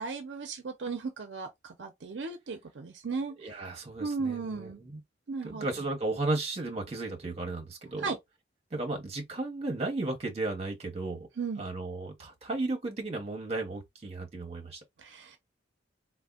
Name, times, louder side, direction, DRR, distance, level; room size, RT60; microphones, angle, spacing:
voice 1, 0.0-3.3 4.0-4.8 5.3-5.7 8.0-8.2 11.4-11.7 15.0-15.4, right 4 dB, 70° right, 0.5 m, -35 dB
voice 2, 3.4-5.0 5.4-8.1 8.7-11.3 11.6-14.8, right 2 dB, 35° right, 0.9 m, -34 dB
3.4 x 2.1 x 2.3 m
head